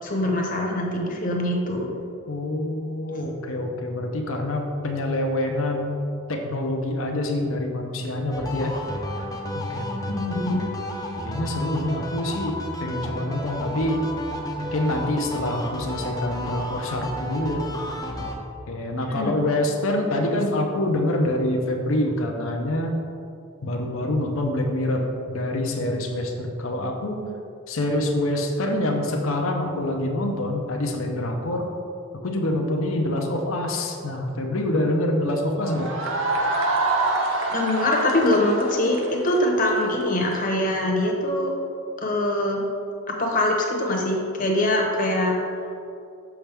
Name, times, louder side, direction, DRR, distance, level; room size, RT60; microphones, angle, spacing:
voice 1, 0.0-1.9 3.1-3.2 10.1-10.7 19.1-19.4 37.5-41.5 42.0-42.6 43.1-45.4, left 1 dB, 40° left, 0 dB, 0.9 m, -23 dB
voice 2, 2.3-5.9 6.3-8.7 9.7-10.2 11.2-14.0 14.7-17.6 18.2-18.3 18.7-23.0 23.6-27.2 27.7-31.6 32.2-35.9, left 1 dB, 60° left, 1 dB, 0.6 m, -26 dB
sound 1, 8.3-18.3, left 1 dB, 15° left, 0.6 m, -32 dB
sound 2, 35.6-40.4, right 2 dB, 60° right, 0.7 m, -26 dB
6.3 x 5.9 x 3.4 m, 2.6 s
head